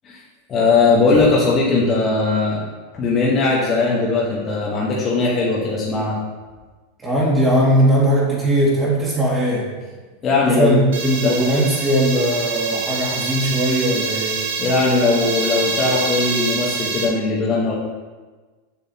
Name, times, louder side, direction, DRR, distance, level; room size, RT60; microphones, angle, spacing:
voice 1, 0.5-2.6 2.9-6.2 10.2-10.8 11.2-11.4 14.6-17.7, left 3 dB, 25° left, -5 dB, 1.2 m, -19 dB
voice 2, 7.0-9.7 10.4-14.4, right 1 dB, 15° right, -5 dB, 2.1 m, -19 dB
sound 1, 10.9-17.1, right 5 dB, 85° right, 1.2 m, -26 dB
6.9 x 6.6 x 2.9 m, 1.3 s
supercardioid pair, 145°, 0 cm